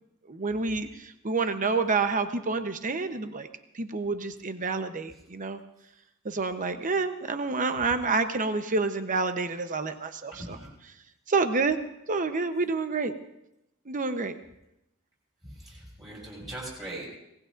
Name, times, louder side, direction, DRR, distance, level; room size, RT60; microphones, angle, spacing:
voice 1, 0.3-3.5 3.7-5.6 6.2-10.6 11.3-11.8 12.1-13.1 13.9-14.3, right 4 dB, 40° right, 8 dB, 0.9 m, -28 dB
voice 2, 10.3-10.7 15.6-17.1, right 1 dB, 20° right, -7 dB, 6.6 m, -40 dB
25.0 x 19.0 x 2.6 m, 0.84 s
head